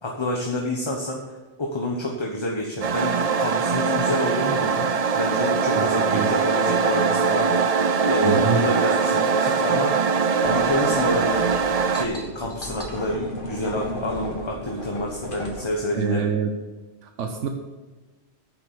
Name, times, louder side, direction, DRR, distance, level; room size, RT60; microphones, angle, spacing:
voice 1, 0.0-4.9 5.1-7.7 8.0-10.0 10.2-16.3, left 1 dB, 25° left, 0 dB, 1.2 m, -28 dB
sound 1, 2.8-12.1, right 5 dB, 45° right, 0.5 m, -22 dB
voice 2, 5.7-6.3 8.2-8.6 15.9-16.5 17.0-17.5, right 6 dB, 90° right, 5 dB, 1.2 m, -26 dB
sound 2, 10.4-15.6, equal, 45° left, 2.1 m, -35 dB
9.7 x 7.2 x 6.9 m, 1.3 s
omnidirectional pair, 1.2 m